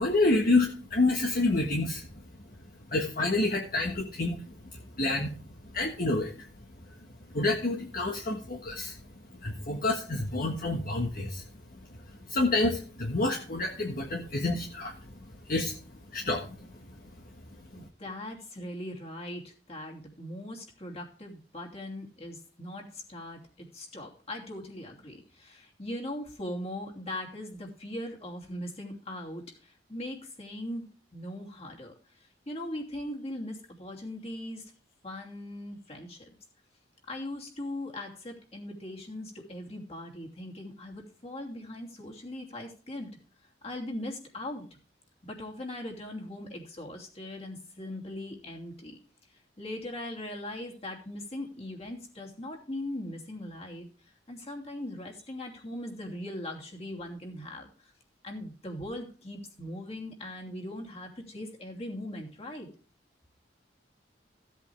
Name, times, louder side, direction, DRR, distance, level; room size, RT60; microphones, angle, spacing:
voice 1, 0.0-2.0 2.9-4.4 5.0-5.3 5.7-6.3 7.3-8.9 9.4-11.4 12.3-14.9 15.5-15.7 16.1-16.5, left 2 dB, 50° left, 1 dB, 1.5 m, -28 dB
voice 2, 17.7-31.9 32.5-34.7 35.0-36.2 37.1-43.1 43.6-44.6 45.2-49.0 49.6-53.9 54.3-57.9 58.2-62.7, left 1 dB, 35° left, 0 dB, 2.8 m, -40 dB
15.5 x 8.3 x 3.4 m, 0.39 s
head